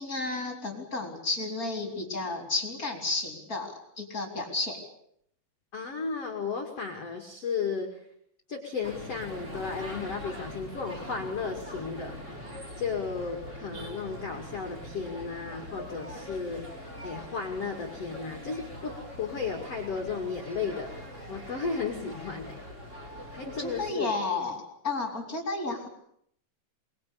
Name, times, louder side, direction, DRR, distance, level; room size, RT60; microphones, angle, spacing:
voice 1, 0.0-4.8 23.6-25.9, left 3 dB, 20° left, 3 dB, 3.7 m, -32 dB
voice 2, 5.7-8.1 8.5-12.4 12.8-20.9 21.3-22.6 23.3-24.2, left 5 dB, 40° left, 1 dB, 2.6 m, -34 dB
sound 1, 8.8-23.9, equal, 20° right, 3.0 m, -42 dB
23.5 x 22.0 x 8.6 m, 0.70 s
omnidirectional pair, 5.4 m